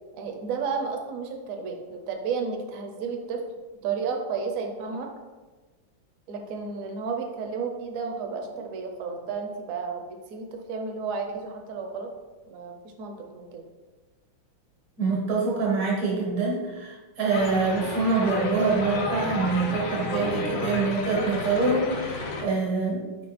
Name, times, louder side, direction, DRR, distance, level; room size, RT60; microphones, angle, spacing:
voice 1, 0.2-3.5 3.8-5.1 6.3-10.0 10.3-12.1 12.5-13.6, right 5 dB, 60° right, 3 dB, 0.9 m, -32 dB
voice 2, 15.0-23.2, right 3 dB, 85° right, -3 dB, 2.3 m, -25 dB
sound 1, 17.3-22.4, left 2 dB, 85° left, 1.8 m, -32 dB
5.1 x 4.8 x 4.2 m, 1.3 s
omnidirectional pair, 2.2 m